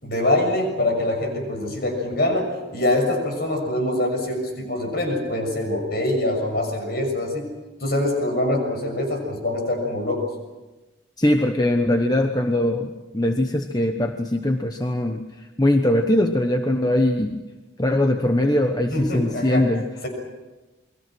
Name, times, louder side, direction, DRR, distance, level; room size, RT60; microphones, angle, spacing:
voice 1, 0.0-7.5 7.8-10.2 18.9-19.7, left 1 dB, 55° left, 3 dB, 6.6 m, -24 dB
voice 2, 11.2-17.4 17.8-19.9, left 1 dB, 20° left, 5 dB, 1.0 m, -21 dB
29.5 x 22.0 x 6.2 m, 1.1 s
head